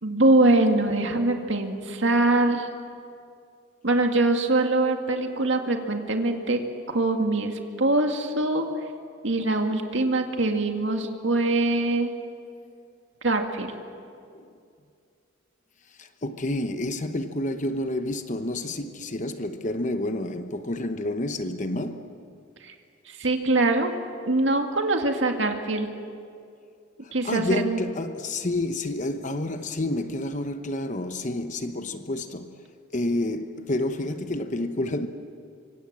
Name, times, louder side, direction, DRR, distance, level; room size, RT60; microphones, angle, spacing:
voice 1, 0.0-2.7 3.8-6.6 6.9-8.7 9.2-12.1 13.2-13.7 22.6-22.7 23.1-23.9 24.2-25.9 27.1-27.8, right 2 dB, 70° right, 2.1 m, -23 dB
voice 2, 15.9-22.2 27.0-32.6 32.9-35.1, left 1 dB, 40° left, 1.0 m, -29 dB
25.5 x 25.5 x 7.5 m
head